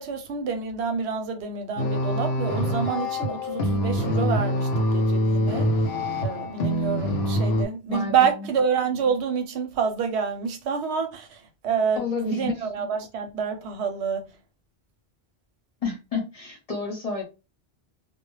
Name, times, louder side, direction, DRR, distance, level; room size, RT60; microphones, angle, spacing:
voice 1, 0.0-5.7 6.2-14.2, right 6 dB, 85° right, 0.9 m, -27 dB
sound 1, 1.8-7.7, equal, 70° left, 0.8 m, -25 dB
voice 2, 7.9-8.5 12.0-12.5 15.8-17.2, left 4 dB, 40° left, 0.8 m, -30 dB
2.1 x 2.0 x 3.0 m
omnidirectional pair, 1.1 m